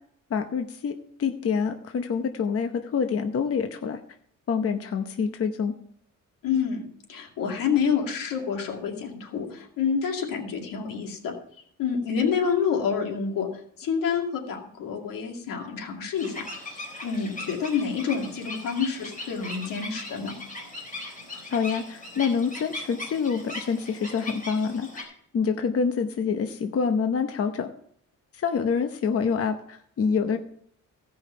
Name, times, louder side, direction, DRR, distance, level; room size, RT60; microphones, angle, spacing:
voice 1, 0.3-4.0 4.5-5.7 21.3-27.7 28.3-30.4, left 6 dB, 45° left, 7 dB, 0.8 m, -27 dB
voice 2, 6.4-11.3 11.8-13.5 13.8-20.4, left 6 dB, 90° left, 2 dB, 2.2 m, -28 dB
sound 1, 16.2-25.0, left 2 dB, 25° left, 4.0 m, -39 dB
16.0 x 5.6 x 5.6 m, 0.66 s
cardioid pair, 115°, 32 cm